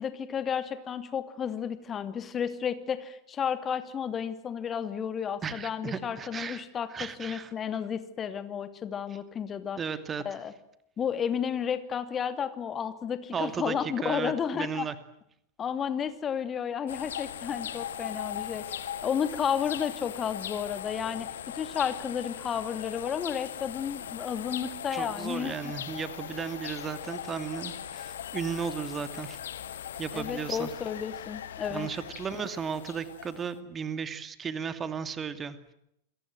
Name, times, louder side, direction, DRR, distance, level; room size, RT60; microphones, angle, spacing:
voice 1, 0.0-9.8 10.2-10.5 11.0-14.9 15.6-18.6 19.0-21.3 21.5-25.5 30.1-31.9, left 8 dB, 25° left, 11 dB, 2.7 m, -32 dB
voice 2, 5.4-7.5 9.8-10.2 13.3-15.0 24.9-29.4 30.0-30.7 31.7-35.7, right 6 dB, 20° right, 12 dB, 2.6 m, -35 dB
sound 1, 16.9-33.6, left 10 dB, 60° left, 1.8 m, -39 dB
28.5 x 23.5 x 7.8 m, 0.76 s
figure-of-eight pair, 90°, 0 cm